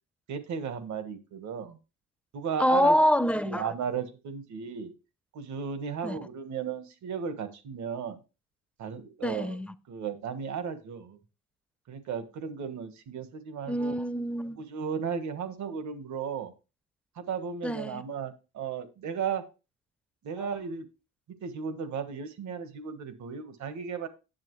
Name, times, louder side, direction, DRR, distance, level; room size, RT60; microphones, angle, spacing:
voice 1, 0.3-1.8 2.3-3.0 3.4-4.9 5.3-8.2 8.8-9.6 9.9-11.2 11.9-14.0 14.6-16.5 17.1-19.4 20.2-20.9 21.4-24.1, right 6 dB, 70° right, 1.4 m, -35 dB
voice 2, 2.6-3.7 6.0-6.2 9.2-9.7 13.7-14.6 17.6-18.0 20.4-20.5, equal, 5° left, 0.6 m, -26 dB
10.5 x 7.4 x 3.2 m
cardioid pair, 90°, 30 cm